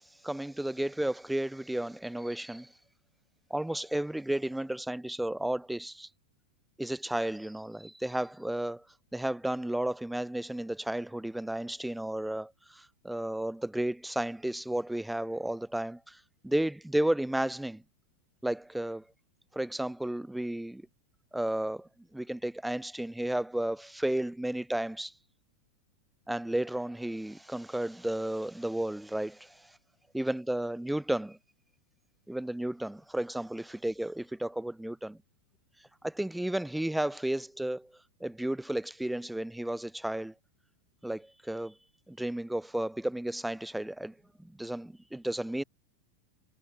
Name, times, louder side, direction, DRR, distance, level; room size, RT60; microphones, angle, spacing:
voice 1, 0.0-2.7 3.5-6.1 6.8-8.8 9.1-17.8 18.4-19.0 19.5-20.8 21.3-25.1 26.3-29.7 30.1-31.4 32.3-35.2 36.0-37.9 38.2-40.3 41.0-41.7 42.1-45.6, right 1 dB, 5° right, 2.4 m, -33 dB
figure-of-eight pair, 90°, 0 cm